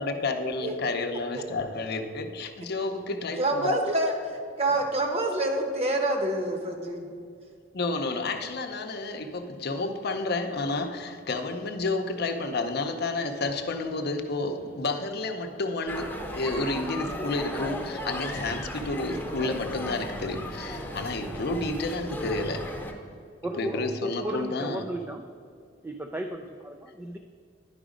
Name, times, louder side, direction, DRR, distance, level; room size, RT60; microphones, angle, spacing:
voice 1, 0.0-3.8 7.7-22.7 23.6-24.9, left 2 dB, 60° left, 6 dB, 0.7 m, -30 dB
voice 2, 3.4-7.1, right 1 dB, 35° right, 3 dB, 1.0 m, -27 dB
sound 1, 15.9-22.9, left 1 dB, 10° left, 0.8 m, -36 dB
voice 3, 23.4-25.2 25.8-27.2, right 1 dB, 10° right, 4 dB, 0.3 m, -35 dB
10.5 x 5.0 x 5.0 m, 2.3 s
head